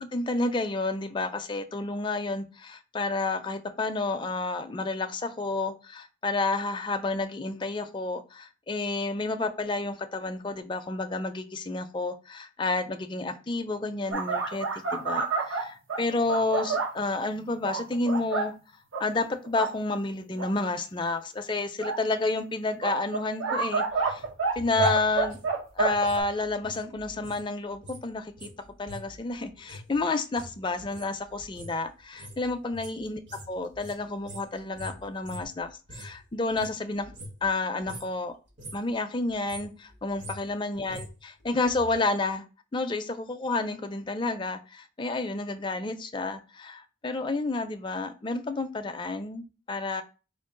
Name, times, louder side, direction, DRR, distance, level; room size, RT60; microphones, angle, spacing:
voice 1, 0.0-18.5 19.0-24.2 24.6-25.4 25.8-28.5 28.8-33.2 33.5-37.1 37.4-38.3 38.7-41.1 41.4-42.4 42.7-50.0, left 3 dB, 25° left, 0.4 m, -30 dB
sound 1, 14.1-17.0 17.6-18.5 18.9-19.0 19.4-19.7 20.4-20.5 21.8-22.0 22.8-24.5 24.8-26.2, right 4 dB, 85° right, 0.8 m, -28 dB
sound 2, 23.9-27.5 27.7-36.2 36.5-37.6 37.8-38.2 38.5-38.9 39.3-41.9 42.2-42.3, equal, 60° right, 1.4 m, -43 dB
4.5 x 2.3 x 3.7 m
head